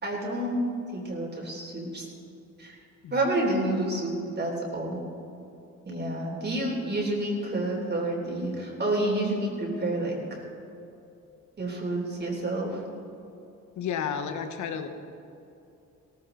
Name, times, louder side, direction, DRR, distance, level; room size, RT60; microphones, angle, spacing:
voice 1, 0.0-0.6 0.9-2.1 2.6-2.8 3.1-5.0 5.9-10.4 11.6-12.8, right 1 dB, 35° right, -2 dB, 3.6 m, -29 dB
voice 2, 13.8-14.9, left 7 dB, 70° left, 8 dB, 1.3 m, -32 dB
17.0 x 14.5 x 4.0 m, 2.7 s
cardioid pair, 90°, 30 cm